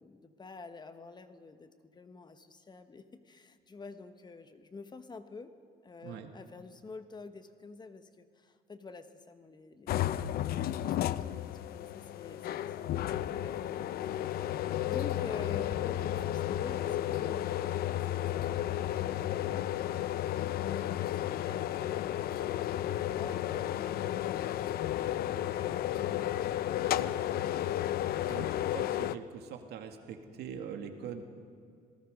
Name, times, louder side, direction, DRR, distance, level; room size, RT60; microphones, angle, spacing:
voice 1, 0.0-5.5 5.8-9.9 10.3-19.8 20.6-26.3, left 4 dB, 25° left, 9 dB, 1.2 m, -49 dB
sound 1, 9.9-29.2, left 12 dB, 65° left, 0.6 m, -33 dB
voice 2, 28.3-31.2, right 8 dB, 75° right, 5 dB, 2.2 m, -43 dB
26.5 x 19.0 x 5.3 m, 2.2 s
cardioid pair, 110°, 17 cm